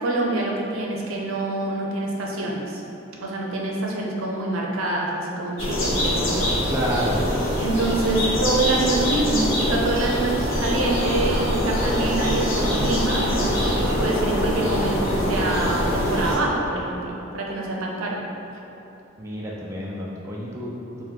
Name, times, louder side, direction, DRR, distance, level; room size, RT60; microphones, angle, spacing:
voice 1, 0.0-2.8 3.2-6.5 7.6-18.2, right 2 dB, 85° right, -2 dB, 0.6 m, -26 dB
sound 1, 5.6-16.4, equal, 75° left, 1.0 m, -23 dB
voice 2, 6.7-7.3 19.2-21.0, equal, 15° right, -5 dB, 0.3 m, -29 dB
4.5 x 2.2 x 3.6 m, 3.0 s
head